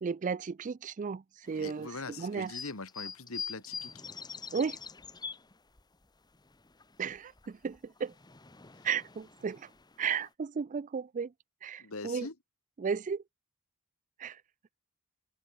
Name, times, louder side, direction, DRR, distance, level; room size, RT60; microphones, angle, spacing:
voice 1, 0.0-2.5 4.5-4.8 7.0-8.1 8.8-9.7 10.0-11.3 11.6-12.3 12.8-13.2 14.2-14.4, right 6 dB, 35° right, 0.4 m, -34 dB
sound 1, 1.5-6.0 6.3-7.5 7.7-10.3, left 5 dB, 20° left, 1.1 m, -45 dB
voice 2, 1.6-3.9 11.8-12.3, left 3 dB, 75° left, 2.0 m, -42 dB
head